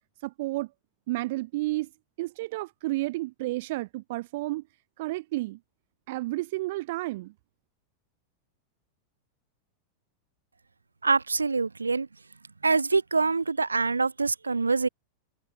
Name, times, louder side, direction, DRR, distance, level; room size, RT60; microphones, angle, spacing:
voice 1, 0.2-0.7 1.1-1.9 2.2-4.6 5.0-5.6 6.1-7.3, right 19 dB, 50° right, 1.1 m, -31 dB
voice 2, 11.0-12.1 12.6-14.9, right 4 dB, 80° right, 1.7 m, -25 dB
figure-of-eight pair, 90°, 0 cm